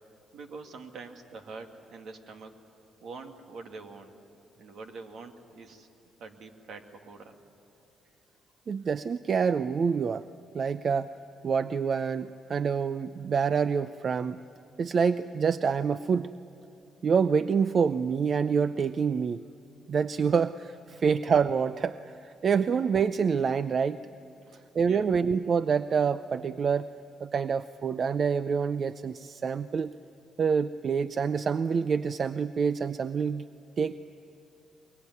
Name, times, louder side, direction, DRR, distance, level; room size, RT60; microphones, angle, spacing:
voice 1, 0.3-2.5 3.0-4.1 4.6-5.9 6.2-7.4 20.9-21.0 24.4-25.3, right 4 dB, 70° right, 5 dB, 2.1 m, -45 dB
voice 2, 8.7-10.3 10.5-11.1 11.4-14.4 14.8-16.3 17.0-19.4 19.9-24.0 24.7-26.9 27.2-29.9 30.4-33.5 33.8-33.9, right 6 dB, 50° right, 14 dB, 0.5 m, -27 dB
23.5 x 23.0 x 9.5 m, 2.8 s
cardioid pair, 90°, 0 cm